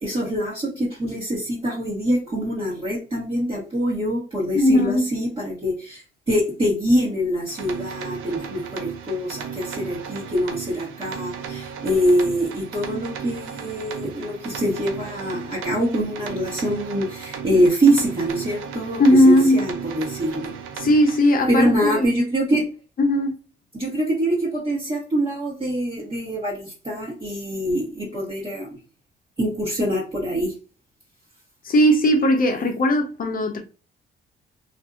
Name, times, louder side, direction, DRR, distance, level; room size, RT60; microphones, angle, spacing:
voice 1, 0.0-20.6 21.5-22.7 23.7-28.8 29.4-30.5, equal, 25° right, 1.3 m, -24 dB
voice 2, 4.5-5.1 19.0-19.7 20.8-22.1 23.0-23.4 31.6-33.6, equal, 45° left, 0.7 m, -18 dB
sound 1, 7.5-21.2, right 7 dB, 90° right, 0.5 m, -35 dB
2.7 x 2.5 x 2.4 m
cardioid pair, 90°, 20 cm